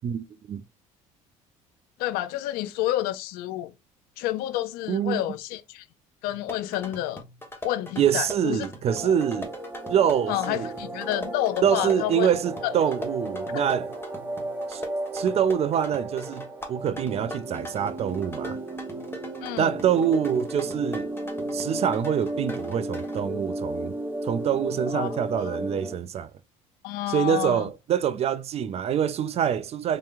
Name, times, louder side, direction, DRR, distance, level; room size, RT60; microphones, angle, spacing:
voice 1, 0.0-0.6 4.9-5.2 8.0-9.5 9.9-10.7 11.6-13.9 14.7-14.8 15.1-18.6 19.6-21.1 21.5-23.9 24.2-26.3 27.1-30.0, right 8 dB, 40° right, 0.4 m, -25 dB
voice 2, 2.0-3.7 4.2-5.9 6.2-7.2 7.6-8.6 8.9-9.1 10.3-12.3 12.6-12.7 13.5-13.6 19.4-19.7 24.9-25.6 26.8-27.7, left 14 dB, 65° left, 0.4 m, -29 dB
sound 1, 6.3-23.2, left 1 dB, 15° left, 1.0 m, -42 dB
sound 2, 8.9-25.9, right 1 dB, 10° right, 0.7 m, -34 dB
3.3 x 2.9 x 2.4 m
hypercardioid pair, 60°, 17 cm